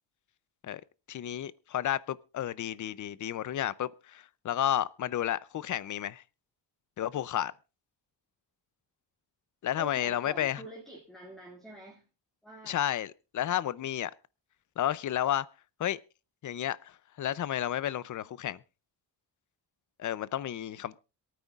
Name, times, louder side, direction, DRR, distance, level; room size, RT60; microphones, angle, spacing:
voice 1, 1.1-6.2 7.0-7.5 9.6-10.6 12.6-14.1 14.8-15.5 15.8-16.0 16.4-18.6 20.0-21.0, left 11 dB, 45° left, 0.5 m, -32 dB
voice 2, 9.8-12.0 12.4-12.8, right 1 dB, ahead, 2.2 m, -47 dB
26.5 x 9.3 x 2.4 m
wide cardioid pair, 155°, 44 cm